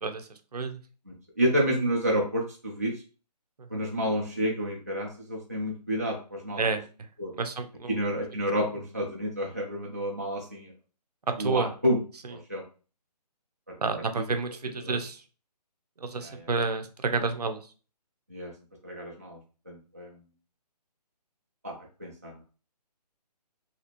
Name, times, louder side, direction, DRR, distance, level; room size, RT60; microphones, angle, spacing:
voice 1, 0.0-0.8 3.7-3.8 6.6-6.8 7.4-7.9 11.4-11.7 13.8-15.2 16.0-17.6, right 4 dB, 65° right, 7 dB, 0.6 m, -30 dB
voice 2, 1.1-2.9 3.7-6.7 7.2-7.3 7.9-10.7 11.4-12.0 12.3-12.6 14.2-14.3 14.7-15.0 16.2-16.5 18.3-18.5 18.8-19.4 19.7-20.2 21.6-22.4, equal, 25° right, -3 dB, 0.3 m, -30 dB
2.8 x 2.4 x 2.9 m, 0.37 s
hypercardioid pair, 175°, 21 cm